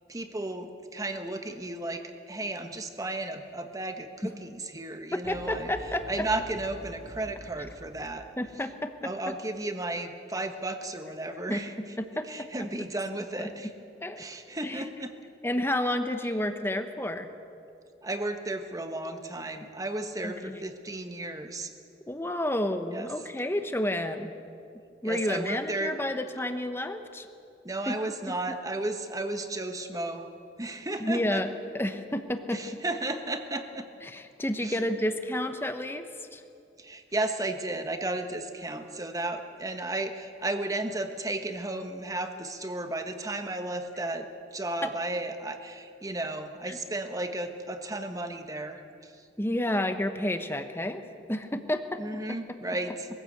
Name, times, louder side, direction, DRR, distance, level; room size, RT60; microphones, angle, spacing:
voice 1, 0.1-5.7 6.1-8.2 9.0-11.7 12.3-13.7 14.2-15.1 18.0-21.7 22.9-23.1 25.0-26.0 27.6-30.3 30.6-31.4 32.5-33.9 34.6-34.9 36.8-49.2 52.0-53.1, right 2 dB, 20° right, 6 dB, 1.3 m, -34 dB
sound 1, 5.2-8.8, right 1 dB, 40° right, 2.1 m, -46 dB
voice 2, 5.3-6.0 8.4-9.1 11.5-11.6 12.0-12.3 13.4-13.5 14.0-14.3 14.6-14.8 15.4-17.3 20.2-20.6 22.1-24.4 25.0-27.3 27.9-28.0 31.0-31.5 31.7-32.6 34.0-36.0 36.3-36.4 44.8-44.9 46.7-46.8 49.4-51.0 51.3-52.0, left 1 dB, 15° left, 8 dB, 1.1 m, -30 dB
21.5 x 15.5 x 8.0 m, 2.5 s
head